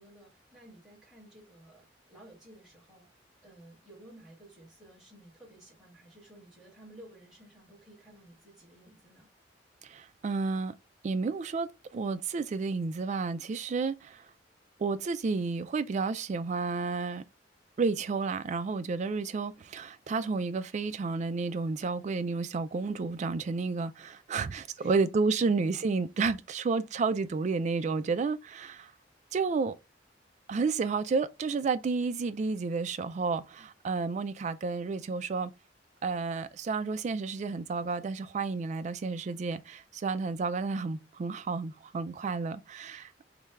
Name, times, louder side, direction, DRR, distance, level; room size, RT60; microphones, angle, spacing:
voice 1, 0.0-3.1 3.4-9.3 24.3-25.0, right 1 dB, 5° right, 1.7 m, -54 dB
voice 2, 9.8-10.7 11.0-14.3 14.8-17.2 17.8-28.9 29.3-29.7 30.5-35.5 36.0-43.1, right 4 dB, 40° right, 0.3 m, -31 dB
3.2 x 2.2 x 3.4 m
head